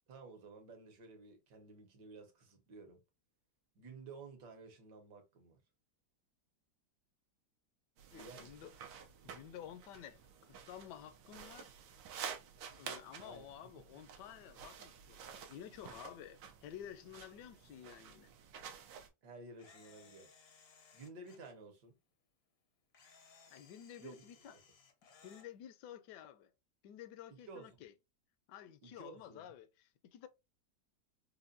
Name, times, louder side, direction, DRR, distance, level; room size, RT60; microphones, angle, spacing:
voice 1, 0.1-3.0 3.7-5.6 8.1-8.6 13.2-13.7 19.2-20.3 20.9-22.0 24.0-24.6 27.3-27.9 28.8-29.5, right 3 dB, 70° right, 1.7 m, -53 dB
sound 1, 8.0-19.1, right 7 dB, 90° right, 1.4 m, -51 dB
voice 2, 8.1-8.7 9.2-11.7 12.7-18.3 23.5-24.5 25.2-26.5 26.8-27.9 28.5-30.3, left 10 dB, 75° left, 1.2 m, -52 dB
Camera, 19.6-21.5 22.9-25.5, left 5 dB, 60° left, 0.6 m, -62 dB
4.7 x 2.2 x 2.5 m
omnidirectional pair, 1.9 m